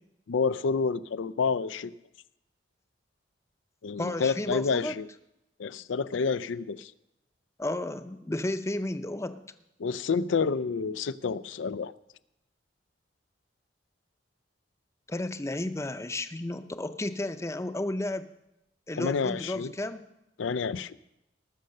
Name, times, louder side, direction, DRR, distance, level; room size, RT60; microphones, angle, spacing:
voice 1, 0.3-1.9 3.8-5.1 5.6-6.9 9.8-11.9 19.0-19.7 20.4-21.0, left 5 dB, 85° left, 17 dB, 0.5 m, -29 dB
voice 2, 4.0-5.0 7.6-9.4 15.1-18.3 18.9-20.0, left 1 dB, 15° left, 10 dB, 0.6 m, -32 dB
18.5 x 6.6 x 6.5 m, 0.88 s
head